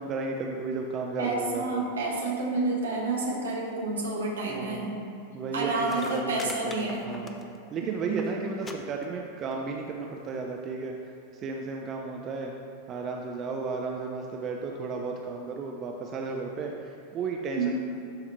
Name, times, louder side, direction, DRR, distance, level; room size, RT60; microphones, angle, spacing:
voice 1, 0.0-1.8 4.5-5.0 5.3-7.4 7.7-11.0 11.3-12.5 12.9-17.8, right 4 dB, 30° right, 1 dB, 0.6 m, -34 dB
voice 2, 1.2-4.9 5.5-7.1 7.8-8.3 17.5-17.8, right 3 dB, 70° right, -2 dB, 1.5 m, -29 dB
sound 1, 5.5-5.6 5.8-7.7 8.0-8.3 8.6-8.7 9.0-9.5 10.4-10.5, left 3 dB, 20° left, 0.6 m, -43 dB
12.5 x 4.8 x 3.3 m, 2.7 s
figure-of-eight pair, 90°, 0 cm